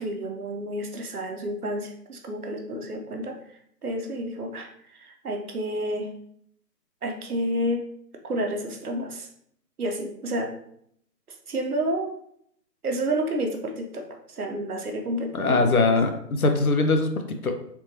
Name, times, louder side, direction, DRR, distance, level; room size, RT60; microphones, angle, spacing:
voice 1, 0.0-6.1 7.0-7.8 8.2-9.3 9.8-10.5 11.5-12.2 12.8-15.8, right 1 dB, 60° right, 2 dB, 0.8 m, -30 dB
voice 2, 15.3-17.1 17.4-17.6, left 3 dB, 60° left, 6 dB, 0.5 m, -21 dB
3.4 x 2.9 x 2.8 m, 0.68 s
figure-of-eight pair, 160°, 50 cm